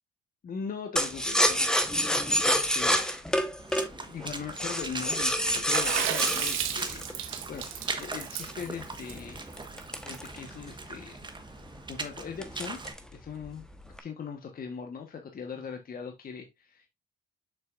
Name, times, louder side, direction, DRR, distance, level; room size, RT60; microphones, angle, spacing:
voice 1, 0.4-3.1 4.1-9.6 10.0-11.3 11.7-12.8 13.1-13.6 14.0-16.9, left 6 dB, 45° left, 3 dB, 1.4 m, -40 dB
sound 1, 1.0-7.9 8.4-10.9 11.2-11.3 11.6-12.0 12.4-13.1 13.4-14.0, equal, 5° left, 1.2 m, -28 dB
Water / Splash splatter, 3.6-12.9, right 3 dB, 25° right, 1.3 m, -40 dB
Water / Splash splatter 2, 5.7-10.2, right 10 dB, 90° right, 1.0 m, -33 dB
7.4 x 5.8 x 2.5 m, 0.21 s
cardioid pair, 90°, 20 cm